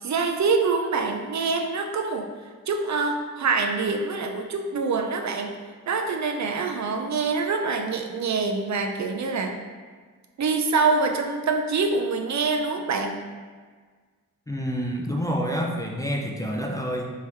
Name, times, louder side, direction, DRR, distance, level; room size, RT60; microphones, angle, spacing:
voice 1, 0.0-2.3 2.7-5.6 5.9-9.6 10.4-13.2, right 4 dB, 55° right, 4 dB, 0.5 m, -25 dB
voice 2, 14.5-17.1, equal, 10° left, -1 dB, 0.4 m, -28 dB
4.7 x 3.5 x 2.9 m, 1.5 s
wide cardioid pair, 110°, 34 cm